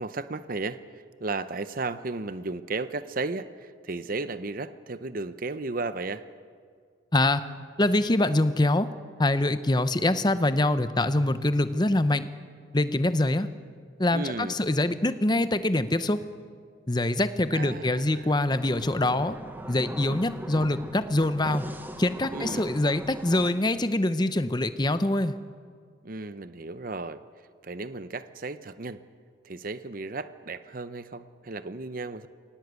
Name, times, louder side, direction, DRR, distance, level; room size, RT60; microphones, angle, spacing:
voice 1, 0.0-6.3 14.1-14.6 17.5-18.3 22.3-22.7 26.0-27.2 27.6-29.0 29.4-32.3, right 3 dB, 45° right, 13 dB, 0.7 m, -34 dB
voice 2, 7.1-7.4 7.8-8.9 9.2-12.2 12.7-13.5 14.0-16.2 16.9-19.4 19.7-21.7 22.0-25.3, left 1 dB, 20° left, 12 dB, 0.8 m, -24 dB
sound 1, 18.4-23.5, right 1 dB, 10° right, 1.0 m, -40 dB
21.5 x 18.5 x 8.2 m, 2.1 s
head